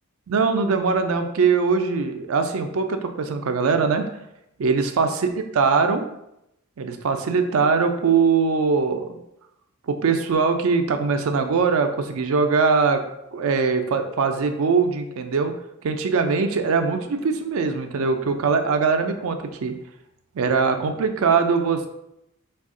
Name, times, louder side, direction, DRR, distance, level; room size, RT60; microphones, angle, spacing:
voice 1, 0.3-4.1 4.6-5.3 5.5-6.1 6.8-9.2 9.9-13.0 13.3-15.5 15.8-19.8 20.4-21.9, right 5 dB, 75° right, 7 dB, 0.4 m, -21 dB
3.4 x 2.3 x 3.7 m, 0.83 s
head